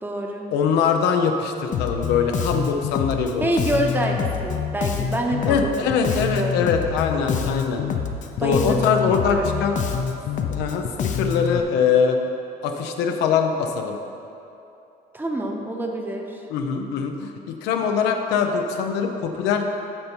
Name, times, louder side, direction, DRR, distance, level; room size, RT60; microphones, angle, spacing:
voice 1, 0.0-0.5 3.4-6.6 8.4-9.7 15.1-16.4, right 1 dB, 10° right, 1 dB, 0.9 m, -27 dB
voice 2, 0.5-3.5 5.4-7.9 8.4-9.7 10.5-12.2 12.6-14.0 16.5-19.6, left 6 dB, 90° left, 4 dB, 0.7 m, -22 dB
Bass guitar, 1.7-11.6, left 7 dB, 50° left, 0.6 m, -26 dB
8.8 x 5.5 x 4.5 m, 2.8 s
cardioid pair, 110°, 17 cm